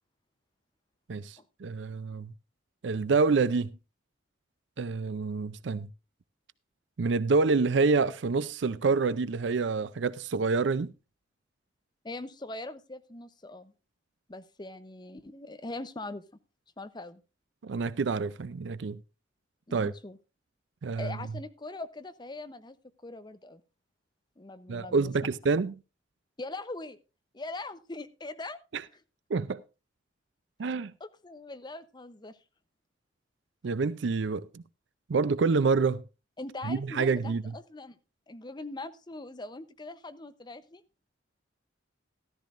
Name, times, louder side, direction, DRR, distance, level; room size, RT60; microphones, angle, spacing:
voice 1, 1.1-2.3 2.8-3.7 4.8-5.9 7.0-10.9 17.6-19.0 19.7-19.9 20.8-21.1 24.7-25.7 29.3-29.6 30.6-30.9 33.6-34.6 35.1-36.0 36.7-37.5, right 4 dB, 70° right, 0.5 m, -27 dB
voice 2, 12.0-13.7 14.3-16.2 16.8-17.2 19.7-20.2 21.0-22.8 23.0-23.6 24.4-25.1 26.4-27.0 27.3-28.6 31.0-32.4 36.4-38.0 38.3-40.8, left 2 dB, 25° left, 0.7 m, -41 dB
13.5 x 13.5 x 2.5 m
head